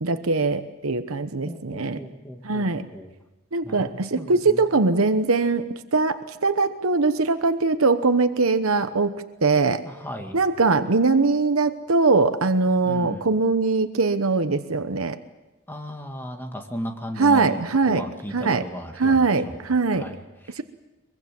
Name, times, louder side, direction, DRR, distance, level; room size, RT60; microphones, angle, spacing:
voice 1, 0.0-2.0 2.4-2.9 3.5-9.8 10.3-15.2 17.2-18.0 18.3-18.6 19.0-20.1 20.6-20.7, right 3 dB, 85° right, 9 dB, 1.0 m, -21 dB
voice 2, 1.4-3.1 3.6-4.7 9.8-10.4 12.8-13.3 15.7-19.6 19.9-20.6, equal, 10° left, 3 dB, 2.0 m, -36 dB
23.0 x 23.0 x 7.7 m, 1.1 s
head